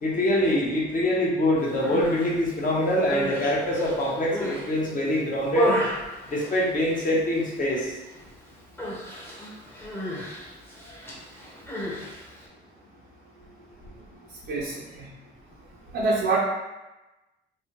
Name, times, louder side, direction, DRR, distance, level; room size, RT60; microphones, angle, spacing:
voice 1, 0.0-5.8 6.3-7.9, left 1 dB, 40° left, -4 dB, 0.9 m, -24 dB
Human voice, 1.7-2.3 2.9-4.7 5.1-7.1 7.4-7.8 8.1-8.3 8.8-12.4, equal, 10° left, 0.8 m, -32 dB
voice 2, 14.5-15.1 15.9-16.4, right 3 dB, 70° right, -6 dB, 0.6 m, -26 dB
3.3 x 2.2 x 2.9 m, 1.0 s
cardioid pair, 90°, 20 cm